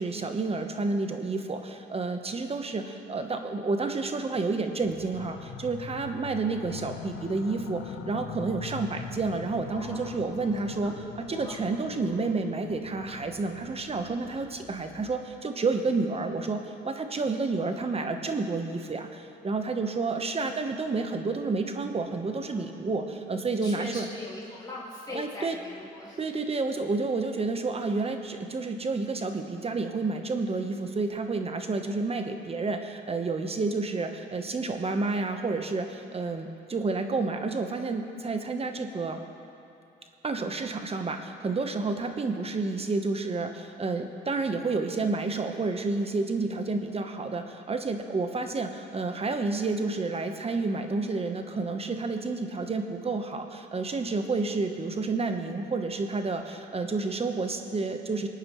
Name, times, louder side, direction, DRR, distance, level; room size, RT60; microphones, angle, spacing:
voice 1, 0.0-24.1 25.1-25.6 26.2-39.2 40.2-58.3, right 3 dB, 30° right, 6 dB, 1.0 m, -30 dB
sound 1, 4.8-15.3, left 9 dB, 80° left, 0.7 m, -43 dB
voice 2, 9.7-10.2 11.0-11.6 22.5-22.6 23.6-26.2, left 2 dB, 20° left, -6 dB, 2.5 m, -41 dB
25.5 x 9.2 x 3.1 m, 2.8 s
cardioid pair, 90°, 20 cm